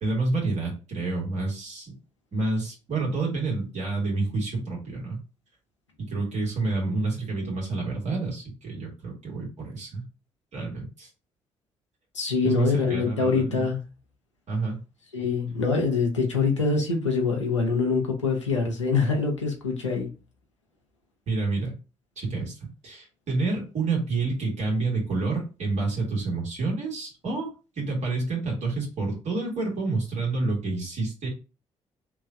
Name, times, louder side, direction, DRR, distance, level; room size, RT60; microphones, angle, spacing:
voice 1, 0.0-1.9 2.3-5.2 6.0-10.1 10.5-11.1 12.4-13.7 14.5-14.8 21.3-21.7 22.2-22.6 22.8-27.5 27.8-31.3, right 3 dB, 50° right, -2 dB, 1.7 m, -28 dB
voice 2, 12.1-13.8 15.1-20.1, left 4 dB, 90° left, 1 dB, 0.6 m, -24 dB
3.0 x 2.4 x 3.7 m, 0.32 s
figure-of-eight pair, 40°, 15 cm